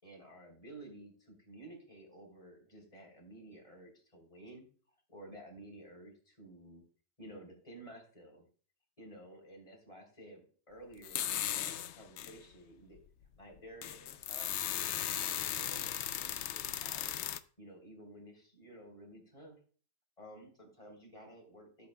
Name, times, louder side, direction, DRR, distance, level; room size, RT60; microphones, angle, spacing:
voice 1, 0.0-4.7 5.1-6.8 7.2-8.4 9.0-13.0 13.4-17.1 17.6-19.6 20.2-21.9, right 1 dB, 20° left, 0 dB, 3.6 m, -53 dB
sound 1, 11.0-12.4 13.0-13.1 13.6-17.4, left 11 dB, 85° left, 0.6 m, -37 dB
15.5 x 8.4 x 2.2 m, 0.41 s
omnidirectional pair, 1.8 m